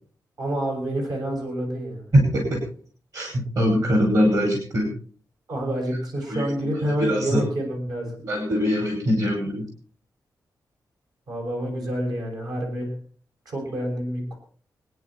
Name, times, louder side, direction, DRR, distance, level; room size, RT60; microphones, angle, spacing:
voice 1, 0.4-2.1 5.5-8.2 11.3-12.9 13.5-14.4, right 1 dB, 70° right, 1 dB, 6.1 m, -28 dB
voice 2, 2.1-2.7 3.1-3.3 3.6-4.9 6.3-6.7 7.0-7.4 8.2-9.6, equal, 55° right, 1 dB, 5.5 m, -22 dB
25.0 x 10.0 x 4.2 m, 0.43 s
wide cardioid pair, 160°, 7 cm